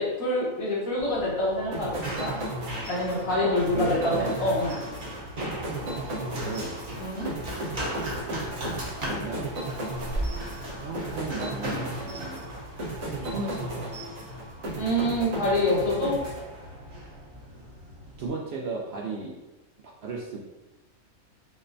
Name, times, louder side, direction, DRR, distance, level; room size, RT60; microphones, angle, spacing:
voice 1, 0.0-2.4 2.9-4.7 7.0-7.3 14.7-16.2, left 1 dB, 75° left, -5 dB, 1.5 m, -26 dB
Run, 1.0-18.3, right 1 dB, 45° right, 0.9 m, -38 dB
sound 1, 1.7-17.0, right 1 dB, 80° right, 1.3 m, -35 dB
voice 2, 3.3-4.3 5.4-6.7 7.4-7.8 9.1-9.5 10.8-12.4 13.2-13.9 18.2-19.3 20.0-20.4, right 3 dB, 65° right, -1 dB, 0.7 m, -36 dB
5.9 x 2.1 x 2.6 m, 1.1 s
omnidirectional pair, 1.4 m